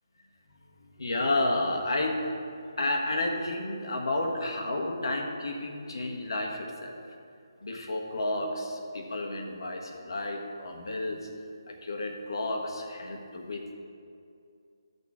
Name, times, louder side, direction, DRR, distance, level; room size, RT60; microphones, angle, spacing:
voice 1, 0.8-2.2 2.8-7.0 7.6-11.3 11.7-13.7, left 2 dB, 70° left, 2 dB, 1.4 m, -31 dB
12.5 x 6.7 x 3.7 m, 2.5 s
figure-of-eight pair, 165°, 2 cm